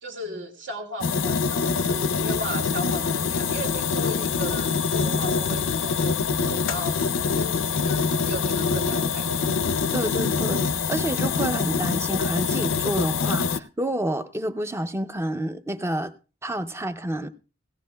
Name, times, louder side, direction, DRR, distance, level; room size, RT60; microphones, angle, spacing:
voice 1, 0.0-7.0 7.3-9.6, right 1 dB, 65° right, 1.9 m, -36 dB
sound 1, 1.0-13.6, left 5 dB, 70° left, 0.5 m, -25 dB
voice 2, 9.9-16.1 16.4-17.3, right 1 dB, 15° right, 0.5 m, -29 dB
17.5 x 16.5 x 2.2 m
head